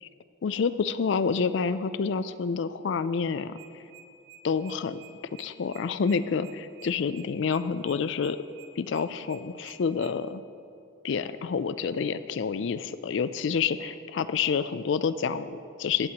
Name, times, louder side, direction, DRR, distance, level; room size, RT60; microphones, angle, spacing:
voice 1, 0.4-3.6 4.4-5.0 5.4-8.4 8.8-10.4 11.0-16.1, left 5 dB, 60° left, 13 dB, 0.4 m, -28 dB
sound 1, 3.5-10.1, right 9 dB, 75° right, 0.5 m, -51 dB
14.5 x 9.6 x 2.9 m, 2.5 s
head